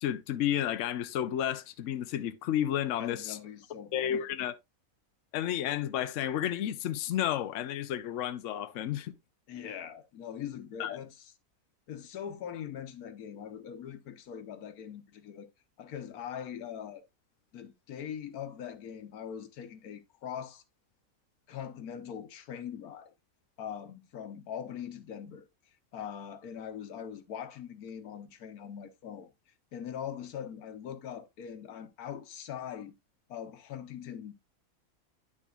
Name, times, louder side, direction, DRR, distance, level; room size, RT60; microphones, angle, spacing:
voice 1, 0.0-3.4 3.9-4.6 5.3-9.1 10.8-11.0, left 11 dB, 65° left, 0.9 m, -31 dB
voice 2, 3.0-4.1 9.5-11.3 11.9-15.5 15.8-17.0 17.5-20.6 21.5-23.1 23.6-25.5 25.9-29.3 29.7-32.9 33.3-34.3, left 8 dB, 90° left, 1.4 m, -42 dB
10.0 x 6.2 x 2.3 m
omnidirectional pair, 1.5 m